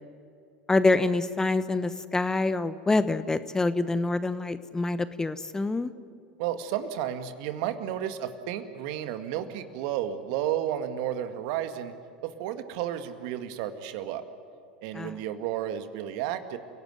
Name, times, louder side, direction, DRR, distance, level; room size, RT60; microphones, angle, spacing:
voice 1, 0.7-5.9 14.9-15.2, left 3 dB, 10° left, 14 dB, 1.0 m, -26 dB
voice 2, 6.4-11.9 12.2-14.2 14.8-16.6, right 11 dB, 55° right, 9 dB, 2.0 m, -32 dB
29.5 x 17.5 x 9.5 m, 2.6 s
figure-of-eight pair, 80°, 5 cm